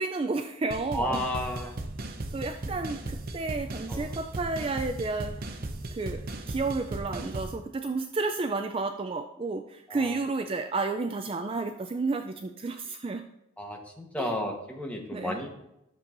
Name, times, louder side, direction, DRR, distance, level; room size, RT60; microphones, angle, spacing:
voice 1, 0.0-1.2 2.3-5.6 5.9-13.2 14.2-14.3 15.1-15.4, right 3 dB, 30° right, 6 dB, 0.3 m, -31 dB
sound 1, 0.7-7.6, right 2 dB, 45° right, 0.7 m, -36 dB
voice 2, 0.9-1.8 3.9-4.1 9.9-10.2 13.6-15.5, left 1 dB, 5° left, 0 dB, 1.1 m, -33 dB
12.5 x 7.0 x 2.6 m, 0.86 s
head